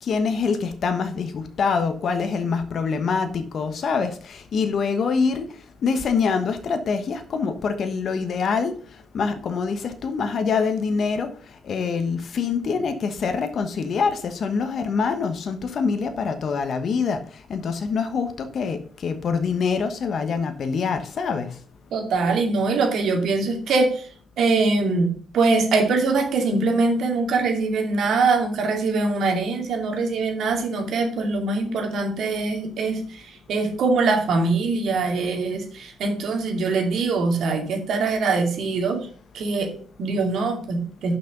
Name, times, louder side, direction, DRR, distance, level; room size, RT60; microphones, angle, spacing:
voice 1, 0.0-5.5 5.8-8.7 9.1-11.3 11.6-17.2 17.5-21.5, left 5 dB, 55° left, 8 dB, 1.2 m, -25 dB
voice 2, 21.9-24.1 24.4-39.1 39.3-41.2, right 3 dB, 70° right, 3 dB, 2.5 m, -23 dB
6.5 x 5.9 x 6.6 m, 0.44 s
cardioid pair, 90°, 0 cm